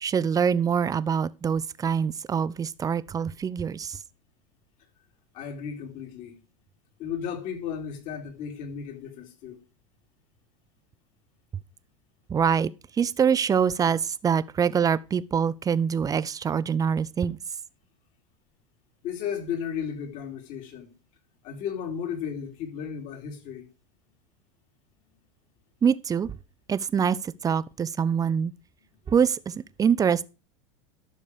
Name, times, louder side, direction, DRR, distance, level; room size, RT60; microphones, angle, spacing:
voice 1, 0.0-4.0 12.3-12.7 13.0-17.4 25.8-26.3 26.7-28.5 29.1-30.2, right 7 dB, 20° right, 0.6 m, -24 dB
voice 2, 5.3-6.4 7.0-9.6 19.0-20.9 21.4-23.7, left 7 dB, 55° left, 3.6 m, -34 dB
12.0 x 6.6 x 4.9 m
hypercardioid pair, 90°, 16 cm